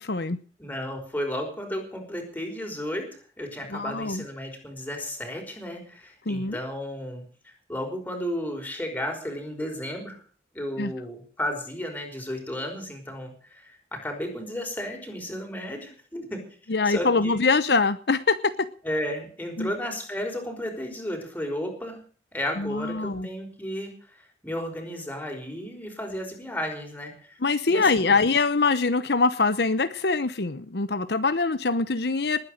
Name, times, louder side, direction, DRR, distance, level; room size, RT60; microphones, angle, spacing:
voice 1, 0.0-0.4 3.7-4.2 6.3-6.6 10.8-10.9 16.7-18.5 19.6-19.7 22.6-23.3 27.4-32.4, left 4 dB, 65° left, 12 dB, 0.9 m, -24 dB
voice 2, 0.6-3.1 3.4-10.2 10.5-16.4 16.8-17.4 18.8-22.0 22.3-27.4 27.7-28.2, equal, 10° left, 3 dB, 5.2 m, -33 dB
20.0 x 9.6 x 6.5 m, 0.42 s
head